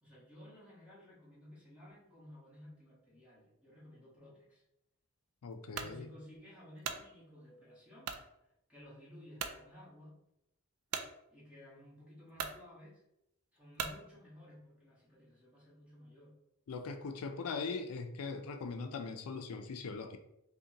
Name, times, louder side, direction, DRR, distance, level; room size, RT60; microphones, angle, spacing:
voice 1, 0.0-4.6 5.7-8.2 8.7-10.2 11.3-13.0 13.5-16.4, left 1 dB, 5° right, -7 dB, 1.2 m, -55 dB
voice 2, 5.4-6.1 16.7-20.2, left 4 dB, 80° left, 6 dB, 0.4 m, -40 dB
sound 1, 5.7-6.0 6.5-7.1 8.0-8.3 8.8-8.9 9.4-9.6 10.9-11.1 11.9-12.0 12.3-12.6 13.8-14.0, right 6 dB, 85° right, 0.4 m, -39 dB
5.2 x 2.2 x 2.8 m, 0.85 s
head